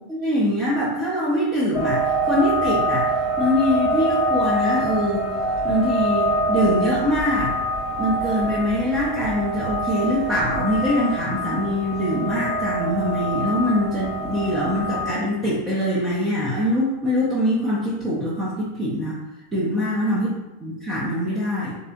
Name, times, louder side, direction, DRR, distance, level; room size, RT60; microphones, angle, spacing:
voice 1, 0.1-3.1 3.4-5.3 5.6-7.5 8.0-19.2 19.5-20.3 20.6-21.8, left 1 dB, 15° right, -8 dB, 0.7 m, -23 dB
sound 1, 1.7-15.1, right 1 dB, 15° left, 1.1 m, -25 dB
3.2 x 2.8 x 2.7 m, 0.99 s
figure-of-eight pair, 90°, 0 cm